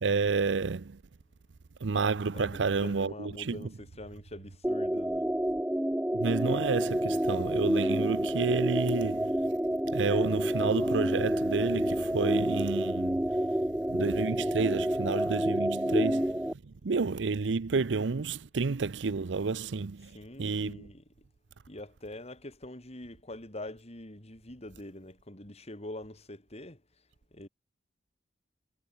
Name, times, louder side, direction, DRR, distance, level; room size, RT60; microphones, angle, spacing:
voice 1, 0.0-1.0 1.8-3.7 6.1-9.5 9.9-13.5 13.9-20.9, right 4 dB, 75° right, 0.6 m, -30 dB
voice 2, 2.3-5.3 20.1-21.0 21.7-26.8 27.3-27.5, left 1 dB, 35° left, 3.9 m, -44 dB
sound 1, 4.6-16.5, equal, 5° right, 0.9 m, -29 dB
head